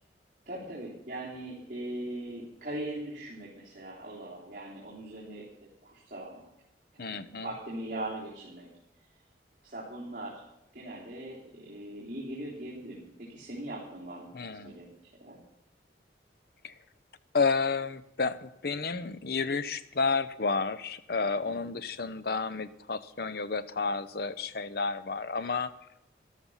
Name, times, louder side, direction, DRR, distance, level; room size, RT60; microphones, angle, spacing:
voice 1, 0.5-6.5 7.0-8.7 9.6-10.4 10.7-13.0 13.3-14.9 15.2-15.4 21.5-21.7, right 1 dB, 45° right, -7 dB, 3.6 m, -40 dB
voice 2, 7.0-7.5 14.3-14.8 16.6-16.7 17.3-25.7, left 4 dB, 60° left, 14 dB, 0.7 m, -31 dB
13.5 x 12.5 x 5.7 m, 0.87 s
head